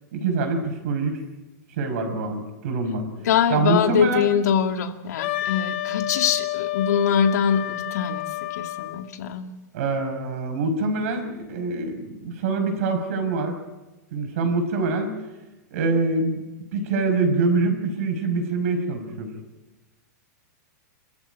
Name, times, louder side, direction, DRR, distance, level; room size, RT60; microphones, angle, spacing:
voice 1, 0.1-1.2 1.7-3.1 3.5-4.2 9.7-13.6 14.1-15.1 15.7-16.4 16.7-19.3, right 3 dB, 50° right, 5 dB, 5.8 m, -25 dB
voice 2, 3.2-9.5, left 8 dB, 65° left, 5 dB, 2.3 m, -23 dB
Wind instrument woodwind instrument, 5.2-9.0, left 15 dB, 40° left, 1.5 m, -29 dB
28.0 x 14.5 x 9.2 m, 1.1 s
supercardioid pair, 165°, 10 cm